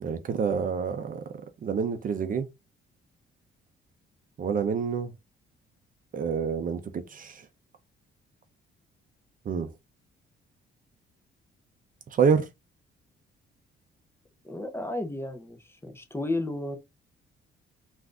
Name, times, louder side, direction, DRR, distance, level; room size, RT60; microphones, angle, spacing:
voice 1, 0.0-1.2 1.6-2.5 4.4-5.1 6.1-6.8 7.1-7.4 9.5-9.7 12.1-12.4, right 6 dB, 45° right, 0.5 m, -27 dB
voice 2, 14.4-16.8, left 2 dB, 10° left, 0.6 m, -33 dB
3.4 x 2.5 x 2.4 m
cardioid pair, 90°, 20 cm